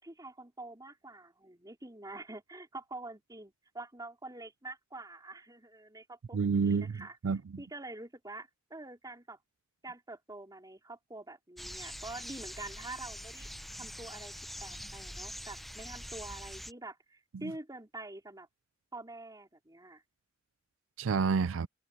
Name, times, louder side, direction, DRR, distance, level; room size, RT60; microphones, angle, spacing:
voice 1, 0.0-7.2 7.6-9.4 9.8-13.5 13.8-14.3 14.6-18.5 18.9-20.0, right 2 dB, 20° right, 4.6 m, -46 dB
voice 2, 6.3-7.6 17.4-17.5 21.0-21.7, right 5 dB, 85° right, 0.4 m, -29 dB
sound 1, 11.6-16.7, equal, ahead, 1.0 m, -44 dB
head